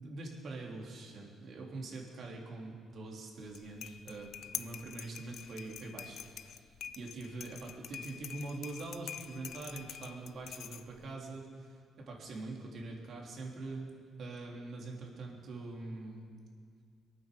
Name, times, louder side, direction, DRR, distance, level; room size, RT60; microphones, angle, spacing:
voice 1, 0.0-11.8 12.1-13.9 14.2-16.3, right 2 dB, 60° right, -1 dB, 3.3 m, -44 dB
sound 1, 3.4-11.1, left 9 dB, 70° left, 0.6 m, -46 dB
22.5 x 9.2 x 6.9 m, 2.1 s
cardioid pair, 90°, 0 cm